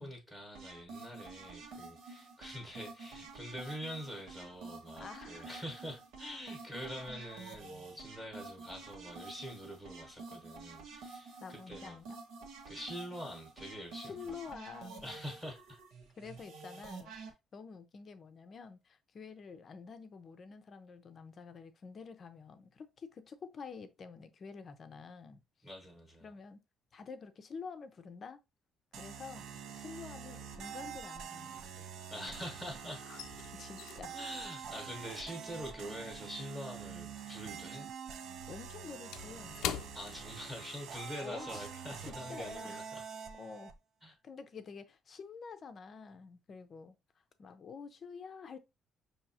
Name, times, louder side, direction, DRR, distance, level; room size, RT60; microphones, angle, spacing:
voice 1, 0.0-12.0 12.7-14.4 15.0-15.8 25.6-26.3 32.1-33.1 34.1-37.9 39.9-43.0 44.0-44.1, equal, 5° right, 1.0 m, -45 dB
sound 1, 0.5-17.3, right 4 dB, 90° right, 1.2 m, -49 dB
voice 2, 5.0-5.5 11.4-12.2 14.0-15.2 16.2-17.1 17.5-25.4 26.2-26.6 26.9-28.4 29.0-29.5 29.7-31.9 33.0-33.2 33.5-34.1 38.5-39.6 41.2-41.7 42.1-42.8 43.4-43.7 44.0-47.0 47.4-48.6, left 5 dB, 30° left, 0.5 m, -48 dB
sound 2, 28.9-43.7, right 7 dB, 55° right, 0.5 m, -46 dB
sound 3, 29.6-30.2 30.4-32.4 32.7-37.4 37.7-41.0 41.3-41.5 41.9-42.2, left 9 dB, 90° left, 0.4 m, -45 dB
6.0 x 2.8 x 2.8 m
cardioid pair, 175°, 0 cm